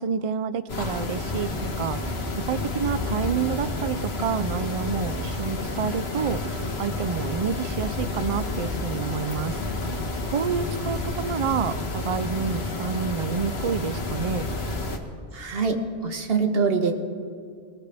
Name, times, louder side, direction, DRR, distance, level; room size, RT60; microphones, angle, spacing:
voice 1, 0.0-9.6 10.2-14.5, right 6 dB, 50° right, 13 dB, 0.4 m, -29 dB
sound 1, 0.7-15.0, left 2 dB, 80° left, 1.5 m, -30 dB
voice 2, 15.3-16.9, right 4 dB, 70° right, 5 dB, 1.4 m, -24 dB
20.0 x 19.0 x 3.4 m, 2.4 s
omnidirectional pair, 1.0 m